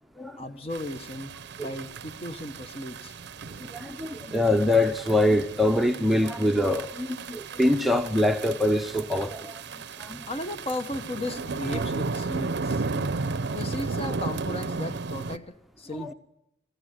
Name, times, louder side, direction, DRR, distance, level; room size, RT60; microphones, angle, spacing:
voice 1, 0.4-3.2 10.3-12.8 13.5-16.1, left 1 dB, 30° left, 1.0 m, -35 dB
sound 1, 0.7-15.4, right 4 dB, 60° right, 0.7 m, -34 dB
voice 2, 3.6-9.6 10.0-10.2 13.1-13.6 16.0-16.1, left 1 dB, ahead, 0.7 m, -24 dB
21.5 x 15.0 x 9.1 m
head